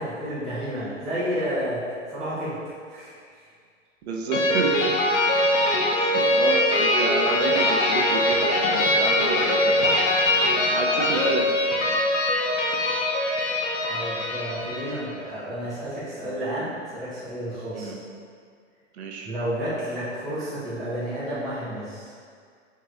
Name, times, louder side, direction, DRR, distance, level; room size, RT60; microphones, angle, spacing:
voice 1, 0.0-1.8 2.1-2.6 2.9-3.4 13.9-17.9 19.2-22.1, equal, ahead, -14 dB, 0.4 m, -31 dB
voice 2, 4.0-5.0 6.0-10.0 10.7-11.5 17.7-18.0 18.9-19.3, right 4 dB, 55° right, 1 dB, 0.6 m, -30 dB
sound 1, 4.3-15.1, left 1 dB, 65° left, 0.8 m, -22 dB
4.5 x 3.0 x 2.4 m, 2.1 s
hypercardioid pair, 125°, 38 cm